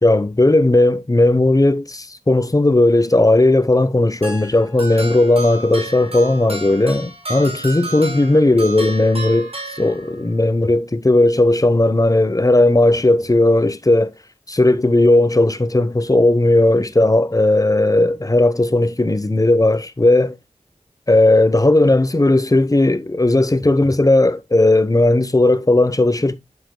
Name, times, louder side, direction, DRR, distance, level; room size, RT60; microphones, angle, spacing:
voice 1, 0.0-14.1 14.5-20.4 21.1-26.4, left 2 dB, 25° left, 0.8 m, -15 dB
sound 1, 4.2-10.4, right 2 dB, 50° right, 3.9 m, -32 dB
9.0 x 7.5 x 2.2 m
wide cardioid pair, 45°, 13 cm